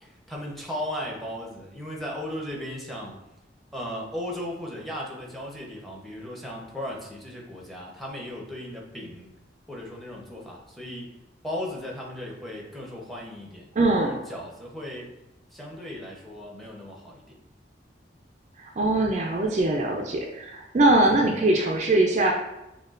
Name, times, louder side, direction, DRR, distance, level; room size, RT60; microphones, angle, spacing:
voice 1, 0.0-3.2 3.7-9.3 9.7-11.1 11.4-15.1 15.5-17.3 21.0-21.3, left 1 dB, ahead, -2 dB, 0.7 m, -36 dB
voice 2, 13.8-14.2 18.6-22.3, right 2 dB, 40° right, 0 dB, 0.4 m, -22 dB
6.4 x 2.3 x 2.4 m, 0.94 s
head